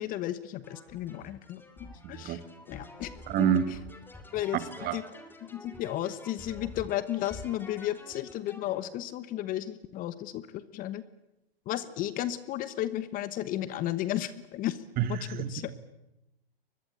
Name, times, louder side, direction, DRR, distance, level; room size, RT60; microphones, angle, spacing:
voice 1, 0.0-2.4 2.7-3.1 3.4-3.8 4.3-5.0 5.4-11.0 11.7-14.8 15.1-15.7, left 13 dB, 30° left, 15 dB, 1.1 m, -34 dB
sound 1, 0.6-8.8, left 2 dB, 5° left, 3.2 m, -48 dB
voice 2, 2.0-2.4 3.3-3.8 4.8-5.0 15.0-15.5, right 9 dB, 30° right, 12 dB, 2.1 m, -28 dB
24.5 x 21.5 x 8.6 m, 0.89 s
hypercardioid pair, 125°, 30 cm